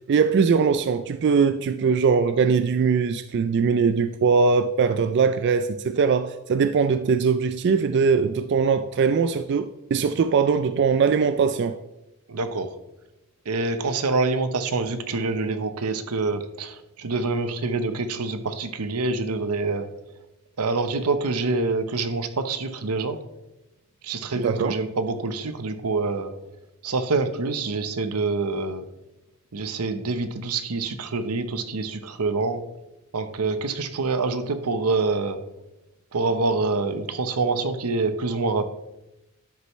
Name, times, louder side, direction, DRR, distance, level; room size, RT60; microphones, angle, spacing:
voice 1, 0.1-11.8 24.4-24.7, right 5 dB, 50° right, 0.3 m, -21 dB
voice 2, 12.3-12.7 13.5-19.9 20.6-23.2 24.0-26.3 26.8-28.8 29.5-32.6 33.1-35.4 36.1-38.7, right 3 dB, 85° right, 0.8 m, -26 dB
11.5 x 6.5 x 3.1 m
head